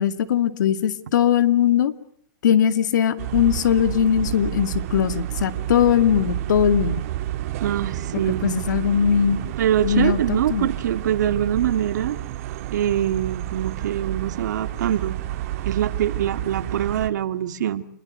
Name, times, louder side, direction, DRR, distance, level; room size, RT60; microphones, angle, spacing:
voice 1, 0.0-1.9 2.4-7.0 8.4-9.4 9.8-10.7, left 9 dB, 70° left, 11 dB, 2.4 m, -20 dB
sound 1, 3.2-17.1, right 14 dB, 45° right, 1.8 m, -30 dB
voice 2, 7.6-8.6 9.6-12.2 12.7-15.2 15.6-17.8, right 10 dB, 65° right, 10 dB, 2.3 m, -24 dB
29.0 x 21.5 x 7.9 m, 0.64 s
hypercardioid pair, 150°, 10 cm